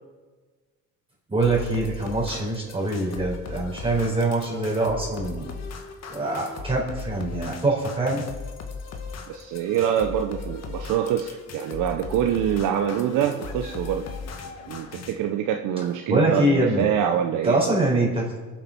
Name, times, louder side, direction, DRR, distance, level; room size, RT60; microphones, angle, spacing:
voice 1, 1.3-5.5 6.1-8.3 16.1-16.8 17.4-18.2, right 2 dB, 15° right, -4 dB, 4.6 m, -24 dB
sound 1, 1.4-15.1, left 4 dB, 55° left, 2.0 m, -37 dB
voice 2, 9.3-14.1 14.7-17.8, right 9 dB, 70° right, 5 dB, 1.0 m, -25 dB
22.5 x 7.9 x 6.0 m, 1.4 s
cardioid pair, 100°, 32 cm